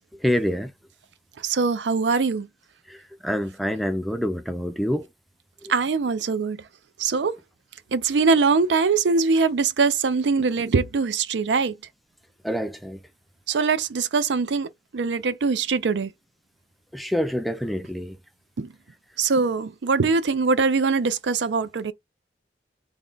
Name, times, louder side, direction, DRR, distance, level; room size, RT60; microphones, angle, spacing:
voice 1, 0.2-0.7 2.9-3.0 3.2-5.1 12.4-13.0 16.9-18.2, equal, ahead, 0.4 m, -26 dB
voice 2, 1.4-2.5 5.7-6.6 7.0-7.3 7.9-11.7 13.5-14.7 14.9-16.1 18.6-18.7 19.2-21.9, right 4 dB, 85° right, 0.5 m, -22 dB
3.6 x 2.2 x 3.8 m
head